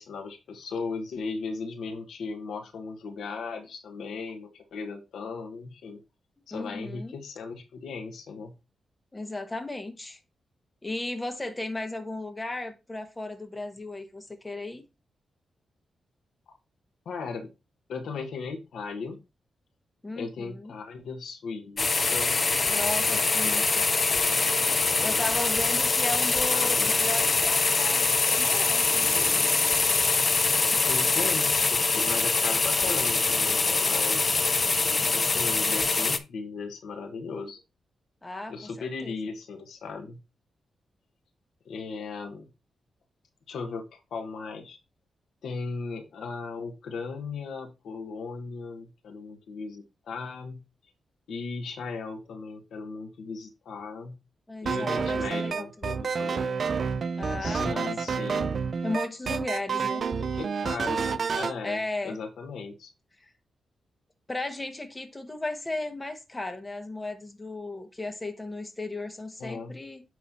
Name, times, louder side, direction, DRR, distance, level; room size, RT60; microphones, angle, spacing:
voice 1, 0.0-6.0 6.5-8.5 17.0-17.5 17.9-19.2 20.1-22.4 23.1-23.8 24.1-24.4 26.5-27.0 30.9-34.4 35.1-37.6 38.5-40.2 41.6-42.5 43.5-44.8 45.4-50.6 51.3-54.2 54.6-56.5 57.4-58.6 60.1-62.9 69.4-69.8, left 4 dB, 85° left, 1.2 m, -37 dB
voice 2, 6.5-7.1 9.1-10.2 10.8-14.8 20.0-20.7 22.7-23.6 25.0-29.4 38.2-39.2 54.5-56.0 57.2-57.9 58.8-60.0 61.6-62.2 63.2-63.3 64.3-70.0, left 2 dB, 20° left, 1.3 m, -35 dB
sound 1, 21.8-36.2, left 4 dB, 40° left, 0.6 m, -24 dB
sound 2, 54.7-61.6, right 5 dB, 60° right, 0.4 m, -29 dB
9.4 x 3.1 x 4.1 m
cardioid pair, 75°, 0 cm